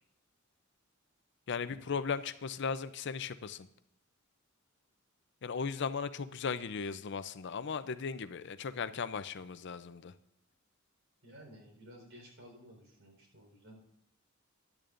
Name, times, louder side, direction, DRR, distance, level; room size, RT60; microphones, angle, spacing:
voice 1, 1.5-3.7 5.4-10.1, left 5 dB, 60° left, 13 dB, 0.5 m, -37 dB
voice 2, 11.2-13.8, equal, 65° right, 2 dB, 4.2 m, -54 dB
15.5 x 11.0 x 2.5 m, 0.77 s
head